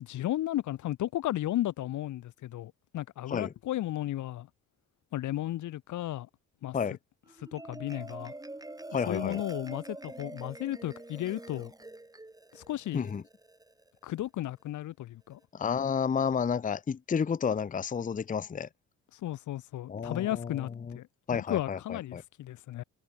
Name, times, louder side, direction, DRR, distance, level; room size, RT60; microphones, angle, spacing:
voice 1, 0.0-4.5 5.1-6.3 6.6-6.8 7.5-8.3 9.1-11.7 12.5-13.1 14.0-15.4 19.2-20.7 20.9-22.8, left 14 dB, 75° left, 1.5 m, -34 dB
Marimba xylophone, 7.3-13.9, right 2 dB, 10° right, 5.9 m, -45 dB
voice 2, 8.9-9.4 12.9-13.2 15.5-18.7 19.9-21.0 21.3-22.2, left 6 dB, 25° left, 0.7 m, -31 dB
cardioid pair, 90°, 30 cm